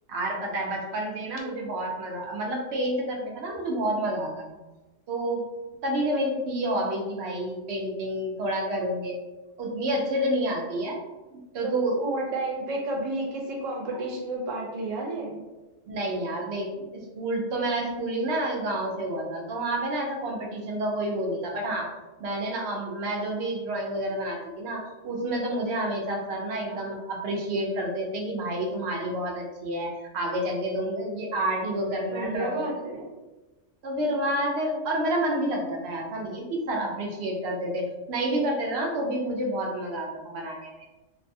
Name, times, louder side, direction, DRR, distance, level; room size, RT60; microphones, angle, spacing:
voice 1, 0.1-4.6 5.1-5.4 5.8-9.2 9.6-11.0 11.3-12.0 15.9-16.7 17.1-21.9 22.2-32.7 33.8-40.7, right 1 dB, 65° right, 0 dB, 0.8 m, -29 dB
voice 2, 11.6-15.4 26.7-26.9 32.1-33.0, right 2 dB, 85° right, -1 dB, 1.0 m, -31 dB
2.6 x 2.1 x 2.6 m, 1.1 s
omnidirectional pair, 1.3 m